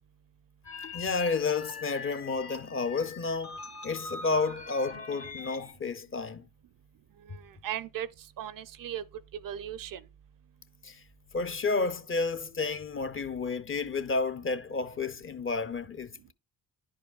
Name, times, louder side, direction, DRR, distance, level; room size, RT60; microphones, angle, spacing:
sound 1, 0.6-5.7, left 5 dB, 80° left, 1.8 m, -42 dB
voice 1, 0.9-3.6 3.8-6.4 10.8-11.0 11.3-16.3, left 4 dB, 30° left, 0.6 m, -31 dB
voice 2, 7.3-8.1 8.4-9.0 9.4-10.0, right 10 dB, 55° right, 0.5 m, -37 dB
10.5 x 4.8 x 2.4 m
supercardioid pair, 50°, 40 cm